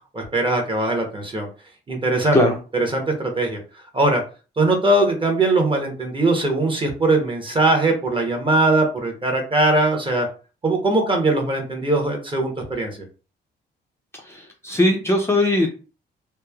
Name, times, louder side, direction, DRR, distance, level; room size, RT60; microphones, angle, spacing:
voice 1, 0.1-1.5 1.9-2.4 2.7-3.6 3.9-4.2 4.6-10.3 10.6-13.0, right 2 dB, 25° right, 2 dB, 0.8 m, -20 dB
voice 2, 14.2-15.7, left 1 dB, 15° left, 0 dB, 0.5 m, -19 dB
3.0 x 2.1 x 2.3 m, 0.35 s
cardioid pair, 90°, 20 cm